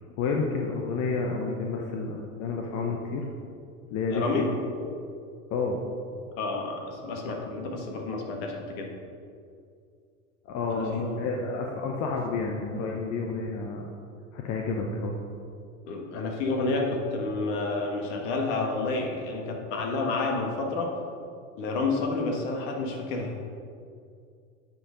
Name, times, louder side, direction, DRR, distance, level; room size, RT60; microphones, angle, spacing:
voice 1, 0.2-3.2 3.9-4.2 4.8-4.9 5.5-5.8 10.5-13.8 14.3-15.2, left 4 dB, 40° left, 0 dB, 0.8 m, -30 dB
voice 2, 4.1-4.5 6.4-8.9 10.7-11.2 15.9-20.9 21.6-23.4, left 3 dB, 55° left, 1 dB, 1.6 m, -30 dB
8.7 x 4.3 x 5.0 m, 2.3 s
hypercardioid pair, 95°, 43 cm